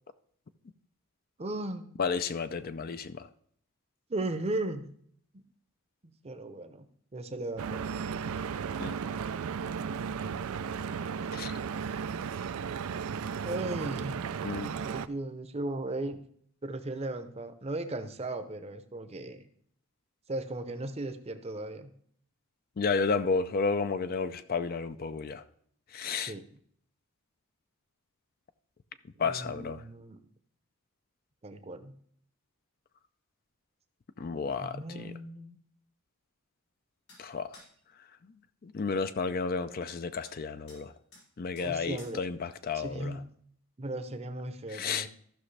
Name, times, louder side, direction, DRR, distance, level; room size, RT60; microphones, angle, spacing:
voice 1, 1.4-1.9 4.1-4.9 5.3-5.4 6.0-6.9 7.1-7.8 13.4-14.2 14.6-16.2 16.6-19.5 20.3-21.9 26.2-26.4 29.2-30.2 31.4-31.9 34.6-35.6 41.6-42.2 42.7-43.3 43.8-45.1, right 2 dB, 30° right, 0.7 m, -36 dB
voice 2, 2.0-3.3 8.8-8.9 11.3-11.5 14.4-14.7 22.8-25.4 25.9-26.3 29.2-29.8 34.2-35.1 37.2-37.5 38.6-40.9 41.4-43.1 44.7-45.1, left 5 dB, 45° left, 0.4 m, -32 dB
Stream / Boat Water vehicle, 7.6-15.1, right 6 dB, 85° right, 0.4 m, -35 dB
sound 1, 37.1-37.2 37.5-37.7 40.2-40.4 40.7-40.8 41.1-41.3 41.6-41.7 42.0-42.2, left 2 dB, 90° left, 4.5 m, -53 dB
14.0 x 6.0 x 3.3 m
head